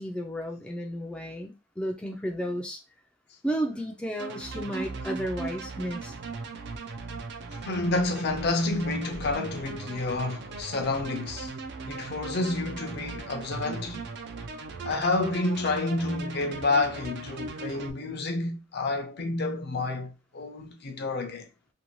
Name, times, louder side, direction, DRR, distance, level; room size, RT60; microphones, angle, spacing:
voice 1, 0.0-2.8 3.4-6.1, equal, 5° left, 0.4 m, -33 dB
sound 1, 4.2-17.9, right 3 dB, 60° right, 0.4 m, -38 dB
voice 2, 7.6-11.5 11.9-14.1 14.8-21.5, left 2 dB, 60° left, 0.6 m, -29 dB
2.6 x 2.2 x 3.0 m
head